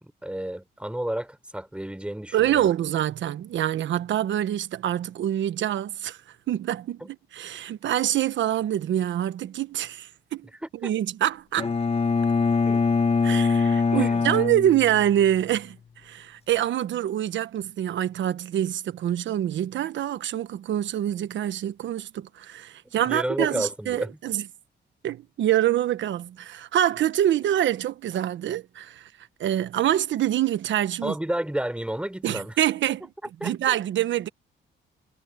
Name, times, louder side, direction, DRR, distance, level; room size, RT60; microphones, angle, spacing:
voice 1, 0.0-2.7 7.0-7.1 10.5-10.9 12.6-12.8 13.9-14.2 22.8-24.2 31.0-32.6 33.4-33.8, right 1 dB, 5° right, 4.1 m, -31 dB
voice 2, 2.3-6.2 6.5-10.5 10.8-11.7 13.2-15.8 16.0-24.4 25.0-29.1 29.4-31.1 32.2-33.0 33.4-34.3, right 11 dB, 70° right, 1.3 m, -25 dB
Bowed string instrument, 11.6-15.4, left 4 dB, 30° left, 1.6 m, -23 dB
cardioid pair, 90°, 20 cm